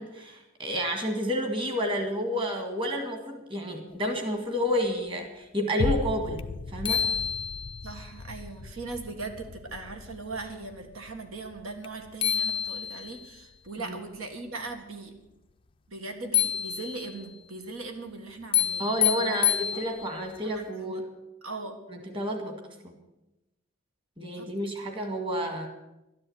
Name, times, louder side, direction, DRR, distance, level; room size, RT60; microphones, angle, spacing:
voice 1, 0.0-7.1 13.8-14.0 18.8-21.1 21.9-22.6 22.8-23.0 24.2-25.7, equal, 25° right, 4 dB, 1.9 m, -30 dB
sound 1, 5.8-14.3 14.8-14.9, left 3 dB, 75° left, 0.6 m, -38 dB
sound 2, 6.4-6.5 6.8-7.9 11.8-11.9 12.2-13.3 16.3-17.2 18.5-20.3, left 10 dB, 25° left, 0.4 m, -28 dB
voice 2, 7.8-15.1 15.9-18.9 19.2-19.4 20.4-21.0 21.4-21.8 24.3-24.5, right 3 dB, 75° right, 5 dB, 1.7 m, -39 dB
12.5 x 10.5 x 8.0 m, 0.95 s
head